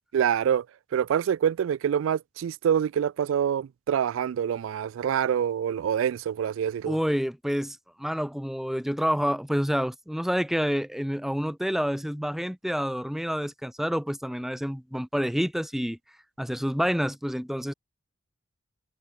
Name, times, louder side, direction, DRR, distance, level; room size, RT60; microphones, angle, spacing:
voice 1, 0.1-0.7 0.9-7.0, right 8 dB, 70° right, 0.3 m, -26 dB
voice 2, 6.9-16.0 16.4-17.7, equal, ahead, 0.9 m, -28 dB
head